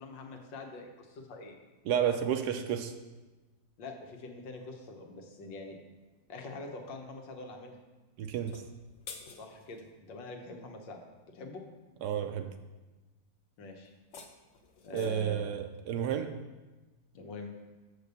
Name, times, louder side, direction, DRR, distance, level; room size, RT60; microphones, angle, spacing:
voice 1, 0.0-1.6 3.8-5.8 6.3-7.8 9.4-11.0 11.3-11.6 13.6-13.9 14.8-15.5 17.1-17.5, left 3 dB, 85° left, 2 dB, 1.7 m, -44 dB
voice 2, 1.9-2.9 8.2-8.5 12.0-12.5 14.9-16.3, right 9 dB, 70° right, 7 dB, 1.1 m, -31 dB
sound 1, 8.3-9.9 13.9-15.4, left 5 dB, 55° left, 1.0 m, -50 dB
6.8 x 5.0 x 6.8 m, 1.2 s
omnidirectional pair, 1.9 m